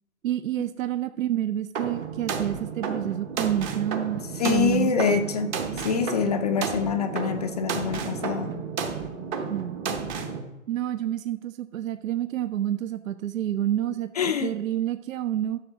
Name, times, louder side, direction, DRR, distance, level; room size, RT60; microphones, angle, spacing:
voice 1, 0.2-5.2 9.5-10.1 10.7-15.6, right 11 dB, 70° right, 12 dB, 0.6 m, -29 dB
sound 1, 1.7-10.4, right 5 dB, 20° right, 0.9 m, -32 dB
voice 2, 4.3-8.6 9.8-10.0 14.2-14.5, left 6 dB, 30° left, 6 dB, 0.5 m, -26 dB
13.0 x 7.1 x 3.6 m, 0.96 s
hypercardioid pair, 135°, 42 cm